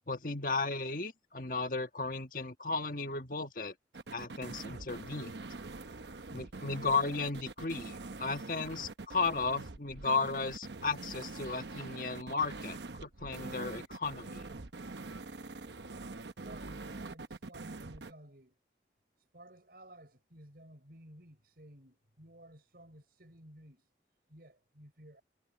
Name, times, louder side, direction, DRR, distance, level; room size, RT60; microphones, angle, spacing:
voice 1, 0.1-3.7 4.1-5.3 6.3-14.5, left 4 dB, 50° left, 1.5 m, -35 dB
sound 1, 3.9-18.1, right 3 dB, 80° right, 1.0 m, -44 dB
voice 2, 16.4-18.6 19.2-23.9 24.3-25.2, right 1 dB, 60° right, 6.3 m, -55 dB
head